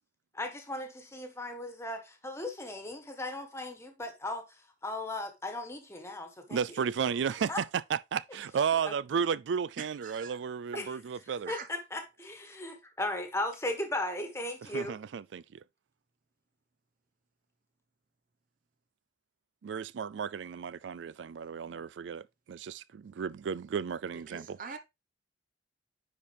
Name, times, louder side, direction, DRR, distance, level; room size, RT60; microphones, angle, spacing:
voice 1, 0.3-4.4 4.8-6.6 7.5-7.6 8.8-8.9 10.8-10.9 11.5-14.9, left 1 dB, 15° left, 1.4 m, -36 dB
voice 2, 6.5-11.5 14.6-15.6 19.6-24.6, right 7 dB, 75° right, 0.4 m, -33 dB
voice 3, 9.8-10.4 10.7-10.8 11.5-11.7 24.1-24.8, right 5 dB, 50° right, 0.9 m, -43 dB
9.8 x 4.4 x 3.4 m
head